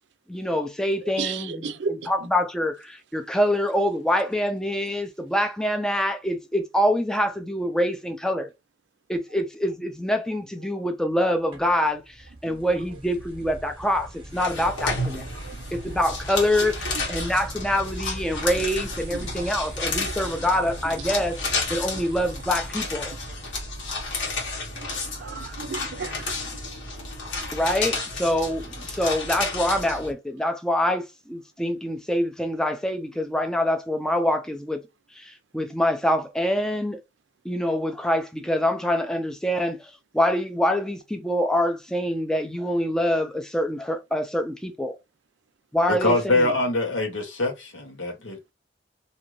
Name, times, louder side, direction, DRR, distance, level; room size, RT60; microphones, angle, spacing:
voice 1, 0.3-8.5 9.1-15.3 15.7-21.4 21.7-23.1 27.5-34.8 35.2-37.0 37.4-39.8 40.1-45.0 45.7-46.5, left 1 dB, 5° left, 0.4 m, -25 dB
voice 2, 1.2-2.1 12.4-12.6 15.4-15.6 16.6-17.2 19.9-20.4 24.7-26.6 27.4-27.5, right 5 dB, 65° right, 0.4 m, -35 dB
sound 1, 11.5-24.2, right 2 dB, 25° right, 0.9 m, -41 dB
sound 2, 14.3-30.1, left 3 dB, 75° left, 1.3 m, -32 dB
voice 3, 45.9-48.5, left 2 dB, 90° left, 1.0 m, -24 dB
2.6 x 2.5 x 3.0 m
head